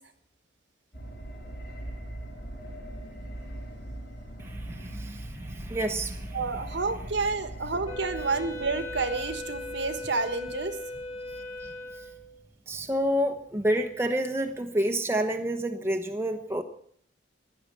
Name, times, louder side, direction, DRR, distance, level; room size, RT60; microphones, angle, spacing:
sound 1, 0.9-12.8 13.1-13.2, right 1 dB, 55° left, 5.1 m, -41 dB
voice 1, 4.4-6.6 11.3-12.1 12.7-16.6, right 1 dB, 15° right, 4 dB, 1.0 m, -29 dB
voice 2, 6.3-10.7, right 3 dB, 65° right, 10 dB, 1.4 m, -29 dB
Wind instrument woodwind instrument, 7.9-12.4, left 1 dB, 30° left, 4.6 m, -38 dB
15.5 x 10.5 x 8.6 m, 0.63 s
head